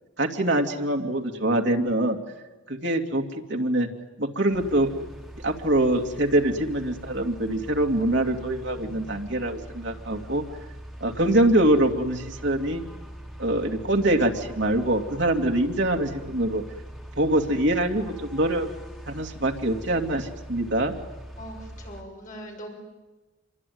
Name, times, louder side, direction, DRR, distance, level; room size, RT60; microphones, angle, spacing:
voice 1, 0.2-2.2 2.7-3.2 3.5-3.9 4.2-4.9 5.4-10.4 11.0-12.8 13.4-16.6 17.2-18.7 19.1-20.9, right 1 dB, 65° right, 2 dB, 2.5 m, -24 dB
sound 1, 4.5-22.0, right 1 dB, ahead, 2.8 m, -42 dB
voice 2, 21.4-22.7, equal, 45° left, 1 dB, 6.2 m, -41 dB
26.5 x 23.5 x 9.5 m, 1.2 s
head